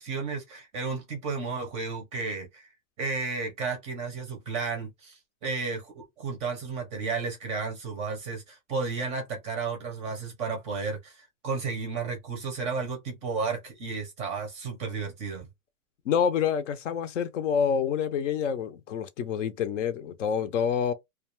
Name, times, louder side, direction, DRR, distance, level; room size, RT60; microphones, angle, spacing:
voice 1, 0.0-2.7 3.0-15.5, right 4 dB, 15° right, 0.5 m, -33 dB
voice 2, 16.1-20.9, left 7 dB, 60° left, 0.6 m, -27 dB
2.4 x 2.3 x 3.0 m
hypercardioid pair, 155°, 41 cm